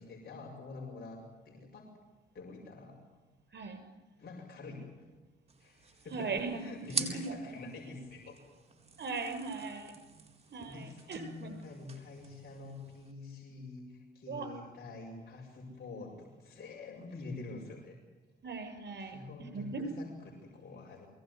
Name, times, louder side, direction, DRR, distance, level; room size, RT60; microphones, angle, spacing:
voice 1, 0.0-1.9 2.3-3.0 4.2-5.1 5.6-8.4 10.6-18.0 19.0-21.1, left 3 dB, 50° left, -1 dB, 5.8 m, -46 dB
sound 1, 5.5-13.1, right 4 dB, 30° right, 4.2 m, -45 dB
voice 2, 6.1-6.7 7.1-7.4 9.0-9.9 10.5-11.5 14.3-14.5 18.4-19.8, right 4 dB, 55° right, 7 dB, 7.2 m, -39 dB
22.5 x 18.0 x 9.6 m, 1.2 s
supercardioid pair, 65°, 21 cm